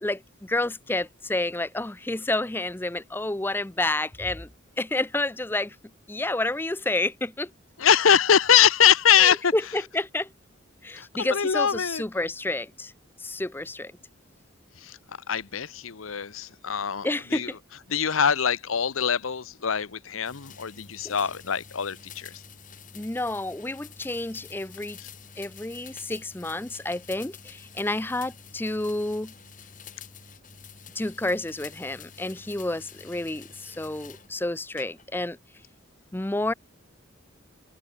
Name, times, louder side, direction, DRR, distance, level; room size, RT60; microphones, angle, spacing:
voice 1, 0.0-4.5 4.8-5.8 6.1-7.5 9.2-10.3 10.8-12.9 13.2-13.9 17.0-17.6 21.0-21.2 22.9-25.0 25.4-29.3 31.0-35.4 36.1-36.5, left 2 dB, 10° left, 0.5 m, -29 dB
voice 2, 7.8-9.5 11.0-12.0 14.8-15.0 15.3-17.1 17.3-17.5 17.9-22.3 25.0-25.1, left 8 dB, 90° left, 0.9 m, -23 dB
sound 1, 20.2-34.3 34.8-35.3, left 6 dB, 40° left, 4.3 m, -48 dB
head